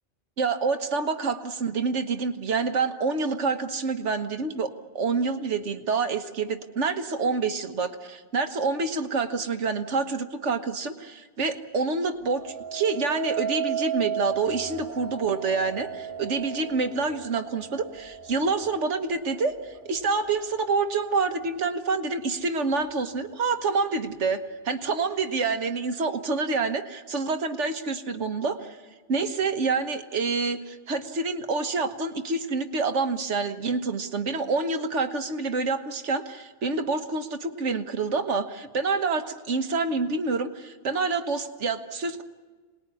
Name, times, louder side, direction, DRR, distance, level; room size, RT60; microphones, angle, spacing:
voice 1, 0.4-28.8 29.1-42.2, right 4 dB, 80° right, 7 dB, 1.6 m, -27 dB
sound 1, 12.3-21.4 22.0-22.4, right 8 dB, 45° right, 2.3 m, -35 dB
27.0 x 20.0 x 9.7 m, 1.4 s
omnidirectional pair, 1.2 m